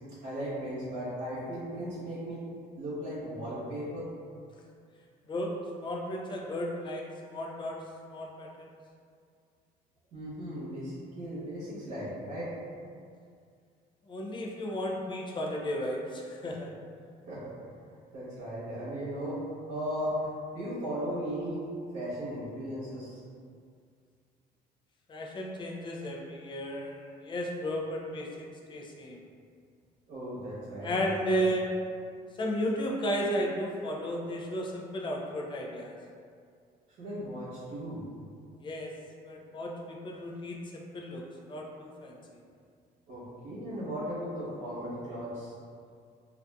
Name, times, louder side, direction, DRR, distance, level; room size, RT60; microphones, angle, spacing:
voice 1, 0.2-2.4 2.8-4.1 10.1-12.5 17.3-17.5 18.1-20.2 20.5-21.7 21.9-23.2 30.1-31.4 37.0-38.0 43.1-45.5, equal, 80° right, -12 dB, 0.9 m, -37 dB
voice 2, 5.8-7.8 8.1-8.7 14.1-16.7 25.1-29.2 30.8-31.7 32.4-36.0 38.6-38.9 39.2-42.2, equal, 30° left, 0 dB, 0.4 m, -34 dB
2.5 x 2.4 x 2.2 m, 2.2 s
cardioid pair, 110°, 17 cm